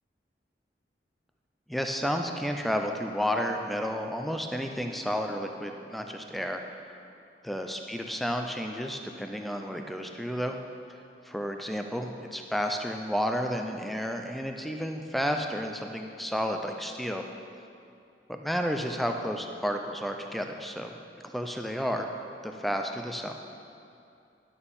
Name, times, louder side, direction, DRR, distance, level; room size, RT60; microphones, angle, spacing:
voice 1, 1.7-6.6 7.5-10.6 11.2-17.3 18.3-20.9 21.2-22.1 22.4-23.3, equal, ahead, 4 dB, 0.6 m, -31 dB
11.0 x 7.0 x 7.1 m, 2.6 s
head